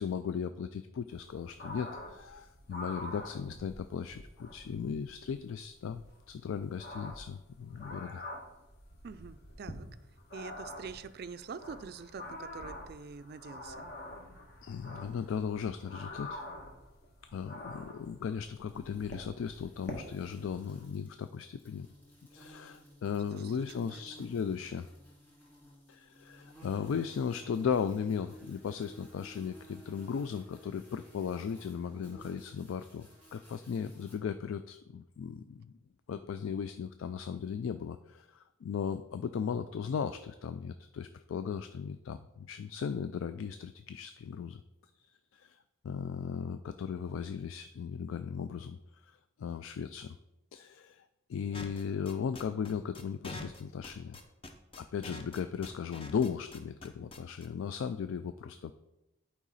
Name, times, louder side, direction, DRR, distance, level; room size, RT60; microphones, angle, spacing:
voice 1, 0.0-8.2 14.6-16.4 17.3-21.9 22.3-24.9 25.9-35.7 36.1-44.6 45.0-45.6 45.8-50.2 50.5-51.0 51.3-54.2 54.8-58.7, left 6 dB, 70° left, 10 dB, 0.3 m, -37 dB
sound 1, 1.1-20.8, left 1 dB, 50° left, 1.3 m, -47 dB
voice 2, 9.0-9.9 10.3-13.8 23.3-24.0, right 5 dB, 50° right, 12 dB, 0.3 m, -45 dB
sound 2, 18.7-34.1, right 1 dB, 10° left, 2.4 m, -56 dB
sound 3, 51.5-57.5, left 2 dB, 25° left, 0.6 m, -45 dB
10.0 x 4.8 x 4.0 m, 0.94 s
head